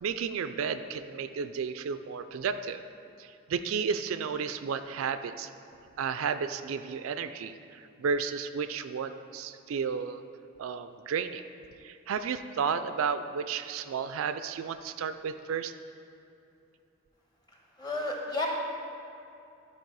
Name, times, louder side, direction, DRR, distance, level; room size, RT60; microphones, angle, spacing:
voice 1, 0.0-2.8 3.2-5.5 6.0-10.2 10.6-11.4 11.8-15.7, right 6 dB, 75° right, 10 dB, 0.3 m, -32 dB
voice 2, 17.8-18.5, left 2 dB, 20° left, -1 dB, 1.1 m, -31 dB
12.5 x 4.2 x 4.7 m, 2.7 s
head